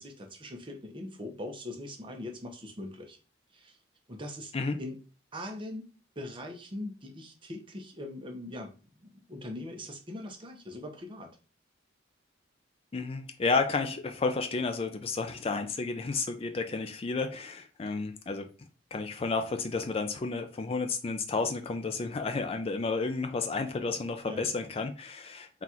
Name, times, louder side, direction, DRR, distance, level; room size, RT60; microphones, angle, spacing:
voice 1, 0.0-3.2 3.5-3.8 4.1-4.5 4.8-5.0 5.3-5.9 6.2-8.7 9.0-11.3 24.2-24.5, left 1 dB, 25° right, 0.7 m, -41 dB
voice 2, 12.9-18.5 18.9-25.6, left 4 dB, 30° left, 0.4 m, -31 dB
3.9 x 2.4 x 4.3 m
head